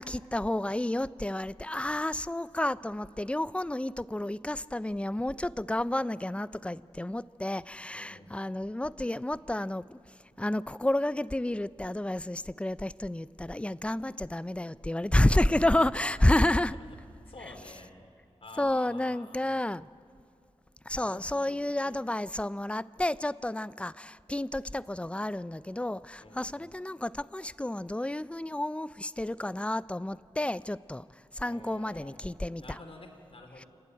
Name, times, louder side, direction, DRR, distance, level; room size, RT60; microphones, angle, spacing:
voice 1, 0.0-10.0 10.4-16.7 18.6-19.9 20.9-31.1 31.3-32.8 33.6-33.7, left 1 dB, 10° left, 17 dB, 0.5 m, -30 dB
voice 2, 7.9-8.3 15.6-15.9 16.3-16.4 17.3-17.9 18.4-19.5 21.0-22.3 26.2-26.5 31.4-32.2 32.6-33.7, left 2 dB, 60° left, 4 dB, 3.3 m, -49 dB
29.0 x 11.5 x 9.1 m, 2.4 s
cardioid pair, 50°, 11 cm